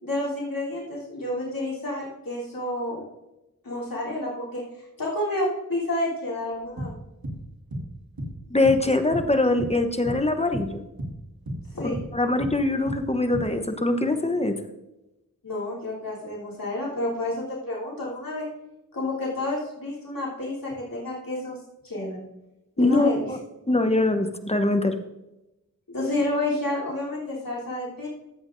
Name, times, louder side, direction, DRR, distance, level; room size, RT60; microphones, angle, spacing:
voice 1, 0.0-3.0 3.6-7.0 11.7-12.0 15.4-18.5 18.9-22.2 22.8-23.3 25.9-28.1, left 1 dB, 75° left, -6 dB, 3.3 m, -30 dB
sound 1, 6.5-9.8 10.0-10.3 10.5-13.6, equal, 85° right, 2.0 m, -33 dB
voice 2, 8.5-10.8 11.8-14.6 22.8-23.4 23.7-24.9, left 2 dB, 20° left, 7 dB, 0.9 m, -23 dB
14.5 x 8.1 x 2.6 m, 0.95 s
wide cardioid pair, 45°, 35 cm